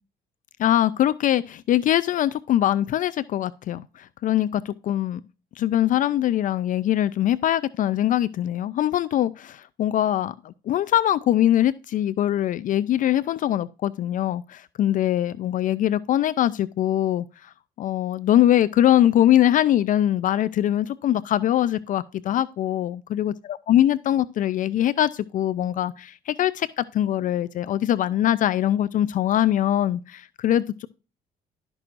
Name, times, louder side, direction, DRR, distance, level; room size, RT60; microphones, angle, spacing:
voice 1, 0.6-5.2 5.6-30.9, left 12 dB, 50° left, 0.4 m, -22 dB
12.0 x 6.1 x 2.5 m
cardioid pair, 110°, 17 cm